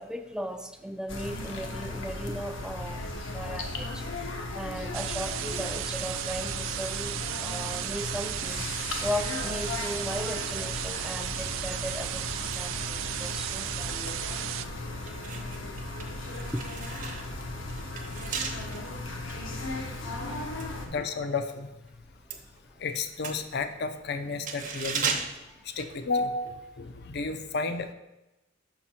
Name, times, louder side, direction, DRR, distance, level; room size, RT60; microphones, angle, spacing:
voice 1, 0.0-3.0 3.3-4.0 4.5-8.7 9.0-14.2 15.0-15.2 16.5-16.6 20.0-20.1, equal, 5° right, 7 dB, 0.4 m, -37 dB
sound 1, 1.1-20.9, left 2 dB, 75° left, 0.9 m, -36 dB
sound 2, 4.9-14.7, right 13 dB, 80° right, 0.3 m, -35 dB
sound 3, 15.0-21.6 21.9-26.5 26.8-27.0, right 5 dB, 40° right, 0.8 m, -37 dB
voice 2, 20.9-21.7 22.8-25.1 25.6-27.9, left 3 dB, 55° left, 9 dB, 0.5 m, -32 dB
6.0 x 5.3 x 4.3 m, 0.97 s
head